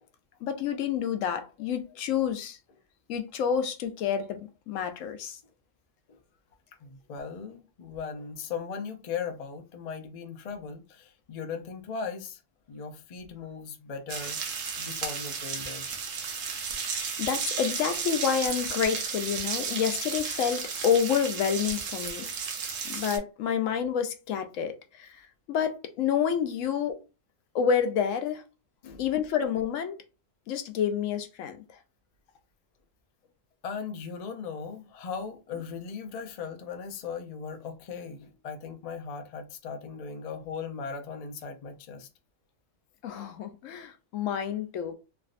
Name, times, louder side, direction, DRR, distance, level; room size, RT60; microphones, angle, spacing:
voice 1, 0.4-2.6 3.1-5.4 17.2-22.3 22.8-25.2 25.5-27.0 27.5-28.4 29.0-30.0 30.5-31.6 43.0-44.9, left 8 dB, 80° left, 1.0 m, -28 dB
voice 2, 6.8-12.4 12.7-14.4 14.8-16.0 28.8-29.1 33.6-42.1, left 6 dB, 60° left, 0.4 m, -38 dB
sound 1, 14.1-23.2, right 6 dB, 85° right, 1.1 m, -33 dB
3.4 x 2.5 x 2.4 m
omnidirectional pair, 1.3 m